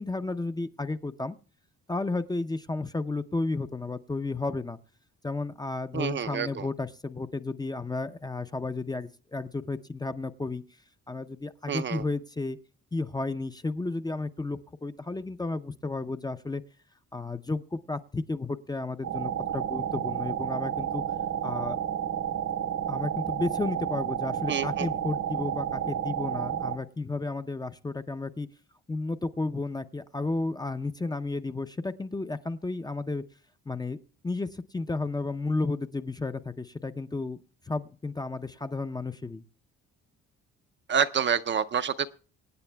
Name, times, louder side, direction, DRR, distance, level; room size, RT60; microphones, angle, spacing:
voice 1, 0.0-1.4 1.9-4.8 5.2-10.6 11.1-12.6 12.9-16.6 17.1-21.0 21.4-21.8 22.9-28.5 28.9-33.2 33.7-34.0 34.2-37.4 37.7-39.4, left 3 dB, 15° left, 9 dB, 0.5 m, -32 dB
voice 2, 5.9-6.6 11.7-12.0 24.5-24.9 40.9-42.1, right 7 dB, 40° right, 11 dB, 0.5 m, -28 dB
sound 1, 19.0-26.8, right 9 dB, 60° right, 1.2 m, -31 dB
25.5 x 9.0 x 2.2 m, 0.39 s
cardioid pair, 90°, 30 cm